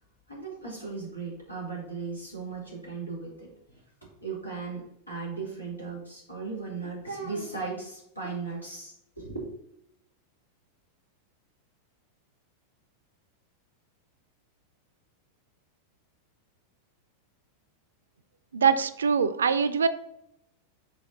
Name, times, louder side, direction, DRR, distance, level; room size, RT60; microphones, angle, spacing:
voice 1, 0.3-9.5, right 4 dB, 85° left, -4 dB, 2.4 m, -37 dB
voice 2, 18.5-19.9, right 6 dB, 70° right, 13 dB, 0.4 m, -23 dB
6.3 x 4.1 x 3.8 m, 0.79 s
figure-of-eight pair, 90°, 0 cm